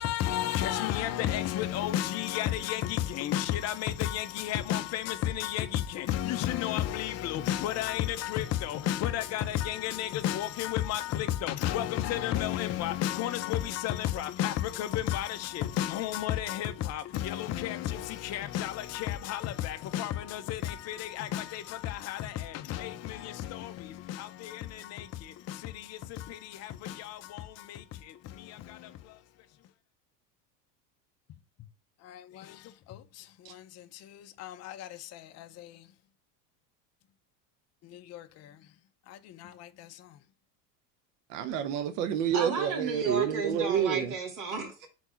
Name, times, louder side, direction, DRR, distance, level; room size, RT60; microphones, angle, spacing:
voice 1, 0.0-29.2 32.0-35.9 37.8-38.7 39.1-40.2, left 12 dB, 35° left, 0.6 m, -33 dB
voice 2, 41.3-44.0, right 9 dB, 70° right, 1.0 m, -28 dB
voice 3, 42.3-44.9, right 4 dB, 40° right, 2.2 m, -33 dB
4.5 x 4.1 x 5.6 m
supercardioid pair, 115°, 48 cm